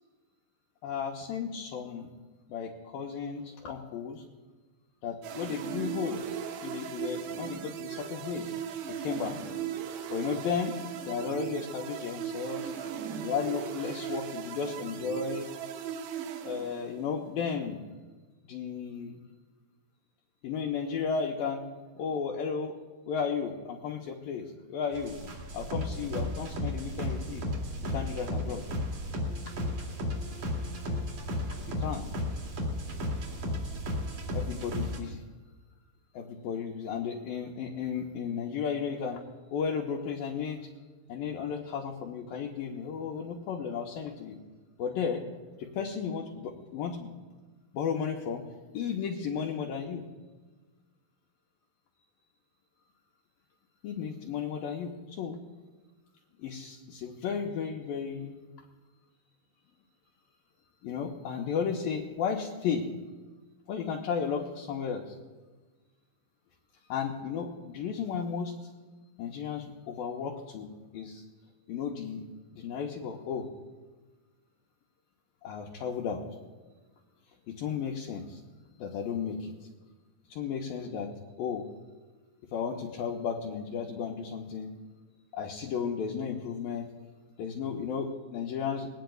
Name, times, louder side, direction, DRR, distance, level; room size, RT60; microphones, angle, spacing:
voice 1, 0.8-2.1 2.5-4.2 5.0-6.2 6.6-8.5 9.0-9.4 10.1-10.7 11.1-12.9 13.2-15.5 16.4-17.8 18.4-19.2 20.4-21.6 22.0-22.7 23.1-25.2 25.5-27.5 27.9-28.7 31.8-32.0 34.3-35.2 36.1-39.2 39.5-40.7 41.1-44.4 44.8-45.2 45.6-47.1 47.7-48.4 48.7-50.0 53.8-55.4 56.4-58.4 60.8-62.9 63.7-65.2 66.9-68.7 69.2-71.2 71.7-72.2 72.5-73.5 75.4-76.2 77.5-78.4 78.8-79.5 80.3-81.1 81.4-81.7 82.5-84.7 85.3-86.9 87.4-88.9, left 6 dB, 70° left, -1 dB, 2.5 m, -34 dB
sound 1, 5.2-17.1, right 8 dB, 85° right, 3.1 m, -37 dB
sound 2, 24.9-35.0, left 1 dB, 50° right, 3.7 m, -34 dB
22.0 x 18.0 x 2.3 m, 1.3 s
omnidirectional pair, 4.6 m